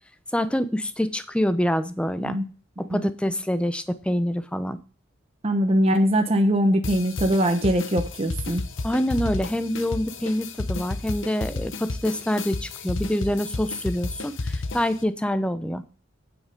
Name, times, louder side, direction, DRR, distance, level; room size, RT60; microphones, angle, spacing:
voice 1, 0.3-2.4 2.9-4.8 8.8-15.8, equal, 5° left, 12 dB, 0.6 m, -26 dB
voice 2, 5.4-8.6, equal, 30° right, 5 dB, 0.9 m, -22 dB
sound 1, 6.8-15.0, left 3 dB, 65° left, 0.8 m, -32 dB
9.1 x 6.6 x 5.2 m, 0.38 s
head